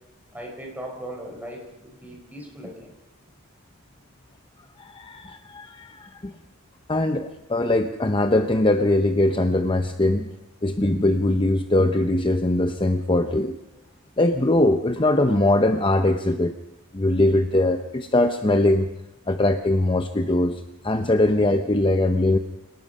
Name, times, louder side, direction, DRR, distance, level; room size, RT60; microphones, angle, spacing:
voice 1, 0.3-2.9, equal, 10° right, 1 dB, 4.5 m, -38 dB
voice 2, 4.8-6.3 6.9-10.3 10.6-13.6 14.2-16.5 16.9-18.9 19.3-22.4, left 1 dB, 20° left, 7 dB, 0.7 m, -21 dB
27.0 x 19.5 x 5.5 m, 0.92 s
head